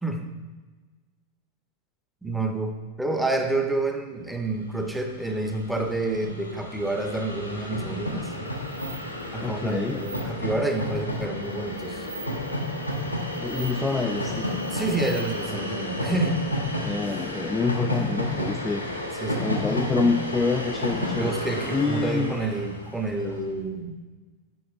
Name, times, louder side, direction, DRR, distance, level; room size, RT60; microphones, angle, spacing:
voice 1, 2.2-8.3 9.3-12.1 14.7-16.5 19.1-19.5 21.1-24.0, right 2 dB, 5° right, 4 dB, 0.7 m, -29 dB
Train, 4.7-4.8 5.0-23.4, left 1 dB, 85° left, 0.8 m, -31 dB
sound 1, 8.1-15.4, right 5 dB, 55° right, 0.7 m, -47 dB
voice 2, 9.4-10.1 13.4-14.5 16.8-18.8 19.4-21.4 21.7-22.4, left 4 dB, 15° left, 5 dB, 0.3 m, -27 dB
10.0 x 5.0 x 2.4 m, 1.3 s
figure-of-eight pair, 90°, 0 cm